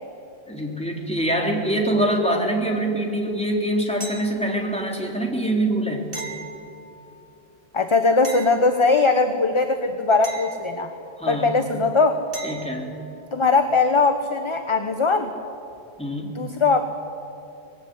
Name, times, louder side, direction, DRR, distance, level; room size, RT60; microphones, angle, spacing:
voice 1, 0.5-6.1 11.2-11.6 12.4-12.9 16.0-16.4, right 1 dB, 5° left, 0 dB, 3.7 m, -24 dB
sound 1, 4.0-4.8 6.1-7.2 8.2-9.3 10.2-11.3 12.3-12.9 15.7-15.8, right 3 dB, 60° right, 2.8 m, -38 dB
voice 2, 7.7-10.9 11.3-12.1 13.3-15.3 16.3-16.9, left 3 dB, 30° left, 6 dB, 1.2 m, -20 dB
24.5 x 20.5 x 9.6 m, 2.8 s
omnidirectional pair, 1.1 m